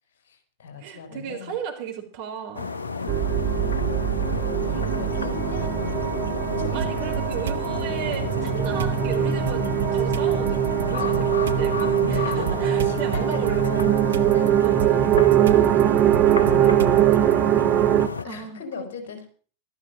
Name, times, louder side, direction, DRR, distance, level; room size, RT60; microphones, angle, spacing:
voice 1, 0.2-1.6 2.9-3.8 4.2-6.1 6.5-7.1 10.9-11.6 12.0-12.5 12.8-15.1 15.4-17.7 18.2-19.3, left 5 dB, 55° left, 6 dB, 4.5 m, -39 dB
voice 2, 0.8-2.7 4.7-5.0 6.7-13.7 14.6-14.8 18.2-18.9, right 8 dB, 50° right, 3 dB, 4.6 m, -35 dB
sound 1, 2.5-18.2, left 4 dB, 75° left, 0.7 m, -31 dB
sound 2, 3.1-18.1, right 11 dB, 30° right, 1.0 m, -22 dB
sound 3, 6.8-7.7 8.1-17.3, right 7 dB, 65° right, 0.7 m, -32 dB
14.5 x 13.0 x 6.5 m, 0.42 s
figure-of-eight pair, 90°, 0 cm